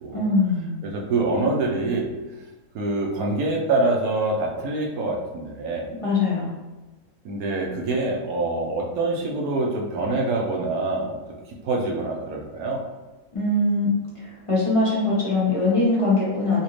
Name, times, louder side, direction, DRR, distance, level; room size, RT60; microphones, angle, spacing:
voice 1, 0.1-0.7 6.0-6.5 13.3-13.9 14.5-16.6, left 2 dB, 30° left, -7 dB, 0.6 m, -21 dB
voice 2, 0.8-2.1 2.7-5.9 7.2-11.2 11.6-12.8, right 2 dB, 70° right, -1 dB, 1.1 m, -25 dB
4.1 x 2.4 x 3.1 m, 1.1 s
omnidirectional pair, 1.7 m